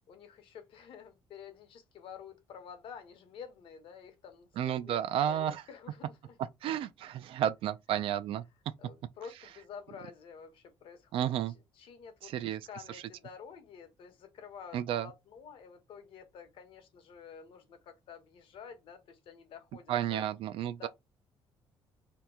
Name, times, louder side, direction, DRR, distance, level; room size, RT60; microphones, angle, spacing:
voice 1, 0.1-5.0 5.3-6.4 8.8-11.3 11.7-20.2 20.8-20.9, left 7 dB, 70° left, 0.9 m, -50 dB
voice 2, 4.6-5.6 6.6-8.4 11.1-11.5 12.2-12.6 14.7-15.1 19.9-20.9, right 10 dB, 70° right, 0.4 m, -32 dB
2.8 x 2.2 x 3.5 m
cardioid pair, 125°, 10 cm